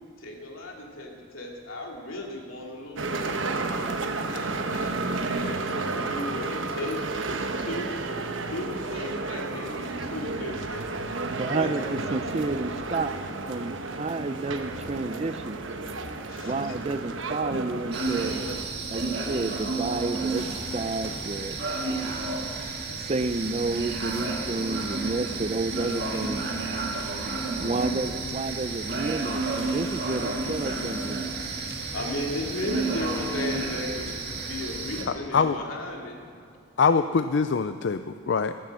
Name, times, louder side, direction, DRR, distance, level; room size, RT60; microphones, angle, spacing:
voice 1, 0.2-3.4 4.3-7.2 7.6-8.0 8.4-10.9 11.5-11.7 16.3-16.7 31.3-31.4 31.8-36.2, left 1 dB, 85° left, 0 dB, 2.9 m, -35 dB
sound 1, 3.0-18.6, right 3 dB, 70° right, 1.1 m, -32 dB
voice 2, 11.4-13.1 13.5-15.6 16.4-18.4 18.9-21.6 23.0-26.5 27.6-31.3, right 3 dB, 30° right, 12 dB, 0.5 m, -30 dB
sound 2, 17.9-35.0, right 3 dB, 50° right, 2.1 m, -31 dB
voice 3, 36.8-38.5, left 5 dB, 60° left, 11 dB, 0.4 m, -23 dB
15.0 x 14.5 x 6.2 m, 2.5 s
head